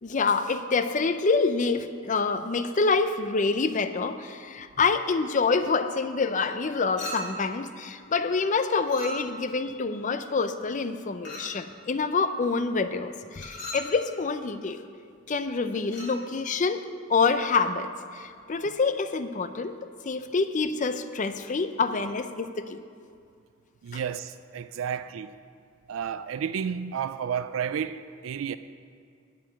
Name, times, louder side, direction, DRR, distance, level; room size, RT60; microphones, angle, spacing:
voice 1, 0.0-14.9 15.3-16.8 17.1-19.7 20.0-22.8 23.9-24.0, left 4 dB, 40° left, 0.5 m, -27 dB
Chink clink, 7.0-7.5 8.9-9.5 11.2-11.6 13.3-13.9 15.8-16.2, equal, 65° left, 2.6 m, -38 dB
voice 2, 23.8-25.4 25.9-28.6, right 7 dB, 80° right, 0.3 m, -31 dB
9.4 x 6.8 x 8.9 m
head